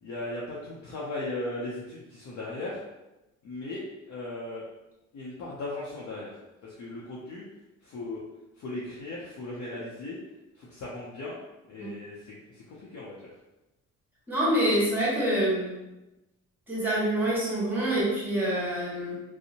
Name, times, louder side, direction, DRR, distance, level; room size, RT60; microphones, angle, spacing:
voice 1, 0.0-2.8 3.4-4.6 5.1-6.3 6.6-7.4 7.8-8.2 8.6-10.2 10.6-11.4 11.7-13.2, left 2 dB, 65° left, -6 dB, 0.6 m, -37 dB
voice 2, 14.3-15.7 16.7-19.2, right 1 dB, 5° right, -7 dB, 1.3 m, -26 dB
2.6 x 2.0 x 2.7 m, 0.98 s
cardioid pair, 90°, 30 cm